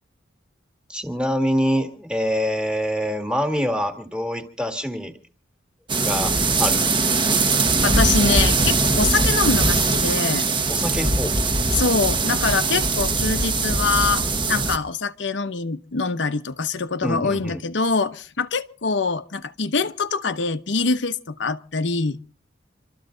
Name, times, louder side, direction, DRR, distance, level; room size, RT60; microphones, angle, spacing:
voice 1, 0.9-5.1 6.0-6.9 10.7-11.4 17.0-17.6, equal, 5° right, 1.9 m, -25 dB
sound 1, 5.9-14.8, right 3 dB, 25° right, 1.3 m, -21 dB
voice 2, 7.8-10.5 11.7-22.2, left 4 dB, 70° left, 0.9 m, -24 dB
26.0 x 13.5 x 3.9 m
head